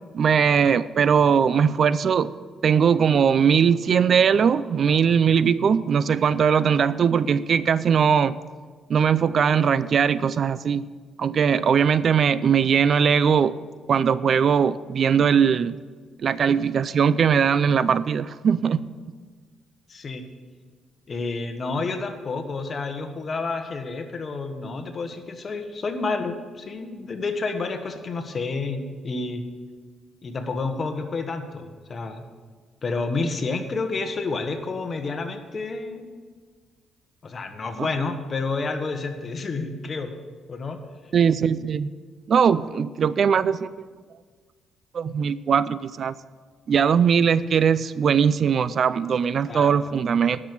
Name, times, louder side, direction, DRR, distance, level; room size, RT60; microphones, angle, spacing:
voice 1, 0.1-2.3 2.6-8.4 8.9-10.9 11.2-13.5 13.9-15.8 16.2-18.9 41.1-41.9 42.3-43.7 44.9-46.1 46.7-50.4, right 7 dB, 55° right, 17 dB, 0.4 m, -20 dB
voice 2, 19.9-20.2 21.1-29.4 30.2-32.2 32.8-36.1 37.2-40.2 40.5-40.8 49.5-49.7, left 3 dB, 40° left, 6 dB, 1.3 m, -29 dB
11.5 x 6.2 x 8.5 m, 1.5 s
cardioid pair, 90°, 0 cm